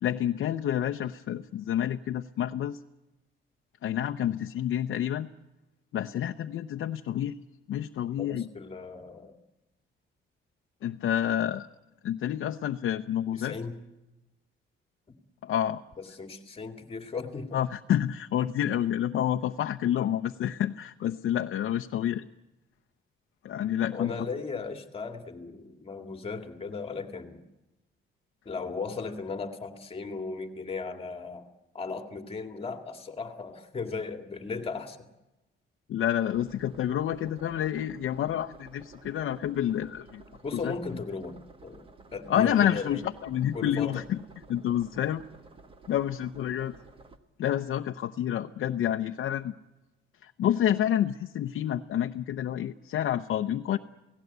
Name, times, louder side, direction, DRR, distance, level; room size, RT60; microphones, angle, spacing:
voice 1, 0.0-2.8 3.8-5.3 5.9-7.4 7.7-8.5 10.8-11.7 12.0-13.6 15.4-15.8 17.5-22.3 23.4-24.1 35.9-40.2 40.6-40.7 42.3-44.2 44.5-45.2 45.9-46.7 47.4-49.5 50.2-53.8, left 10 dB, 75° left, 5 dB, 0.8 m, -28 dB
voice 2, 8.2-9.4 13.3-13.8 15.1-15.2 16.1-17.6 23.9-27.4 28.5-31.5 31.7-35.0 40.4-41.8 42.1-43.0 43.5-44.0, left 4 dB, 30° left, 5 dB, 2.2 m, -37 dB
sound 1, 36.3-47.2, right 3 dB, 25° right, 1.4 m, -53 dB
29.5 x 17.5 x 8.1 m, 1.0 s
cardioid pair, 160°, 20 cm